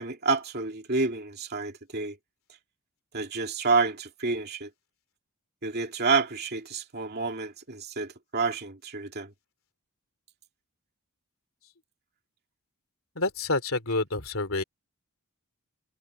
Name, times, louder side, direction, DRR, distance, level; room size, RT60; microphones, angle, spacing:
voice 1, 0.0-2.2 3.1-4.7 5.6-9.3, right 4 dB, 45° right, 2.6 m, -29 dB
voice 2, 13.2-14.6, left 2 dB, 65° left, 3.5 m, -28 dB
head